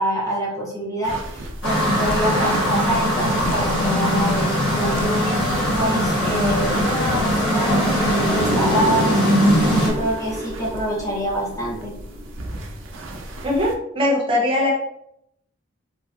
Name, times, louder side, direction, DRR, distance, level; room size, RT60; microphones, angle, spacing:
voice 1, 0.0-12.0, equal, 15° left, -4 dB, 0.6 m, -26 dB
sound 1, 1.0-13.7, right 1 dB, 65° right, 0.5 m, -34 dB
sound 2, 1.6-9.9, equal, 65° left, 1.4 m, -21 dB
sound 3, 8.1-12.8, right 2 dB, 90° left, 1.2 m, -30 dB
voice 2, 13.4-14.7, left 1 dB, 25° right, -3 dB, 0.6 m, -20 dB
3.2 x 2.6 x 2.3 m, 0.75 s
head